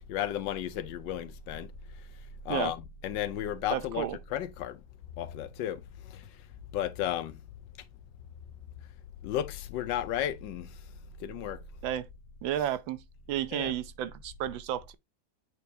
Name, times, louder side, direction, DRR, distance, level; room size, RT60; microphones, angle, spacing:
voice 1, 0.1-1.7 2.5-4.8 5.2-5.8 6.1-6.2 6.7-7.4 9.2-10.7 11.2-11.6 13.5-13.7, left 11 dB, 75° left, 1.2 m, -33 dB
voice 2, 3.7-4.2 11.8-12.1 12.4-13.0 13.3-15.0, right 11 dB, 80° right, 1.3 m, -32 dB
8.2 x 4.6 x 2.7 m
omnidirectional pair, 2.2 m